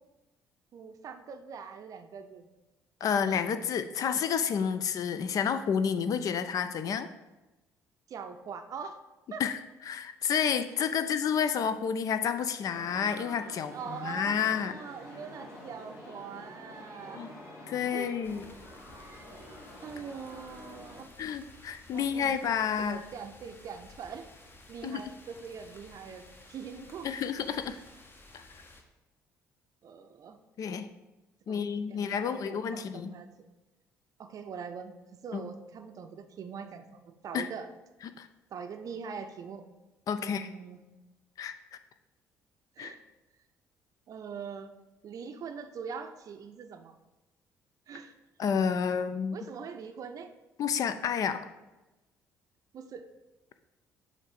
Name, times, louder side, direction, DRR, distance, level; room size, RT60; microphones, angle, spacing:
voice 1, 0.7-2.5 8.1-9.0 9.3-9.4 13.7-17.2 17.9-18.2 19.8-21.1 21.9-22.4 22.8-24.3 24.7-27.1 29.8-30.4 31.5-31.6 31.9-33.3 34.2-35.0 35.2-37.7 38.5-39.7 40.2-40.8 42.8-43.0 44.1-44.7 45.0-46.9 47.9-48.1 49.3-50.3 52.7-53.0, right 6 dB, 45° right, 7 dB, 0.5 m, -42 dB
voice 2, 3.0-7.1 9.4-9.6 9.9-14.7 17.2-17.3 17.7-18.4 21.2-23.0 24.8-25.0 27.0-27.8 28.3-28.4 30.6-30.9 31.5-33.1 35.3-35.4 37.3-37.5 38.2-38.3 40.1-40.5 41.4-41.5 42.8-42.9 48.4-49.4 50.6-51.4, left 7 dB, 45° left, 10 dB, 0.4 m, -30 dB
sound 1, 12.7-21.0, left 1 dB, 70° left, 1.9 m, -48 dB
sound 2, 18.2-28.8, left 2 dB, 25° left, 0.8 m, -54 dB
7.2 x 2.6 x 5.2 m, 1.1 s
figure-of-eight pair, 45°, 8 cm